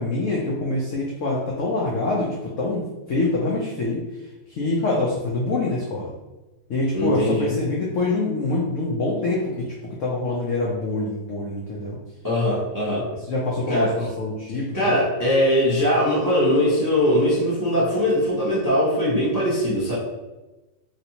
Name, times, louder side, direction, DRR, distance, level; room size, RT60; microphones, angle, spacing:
voice 1, 0.0-4.0 4.5-6.1 6.7-12.0 13.3-14.9, left 2 dB, 85° left, -4 dB, 0.6 m, -25 dB
voice 2, 6.9-7.5 12.2-13.1 13.7-13.9 14.7-19.9, left 1 dB, 30° right, -8 dB, 0.3 m, -21 dB
3.1 x 2.8 x 2.8 m, 1.1 s
omnidirectional pair, 2.0 m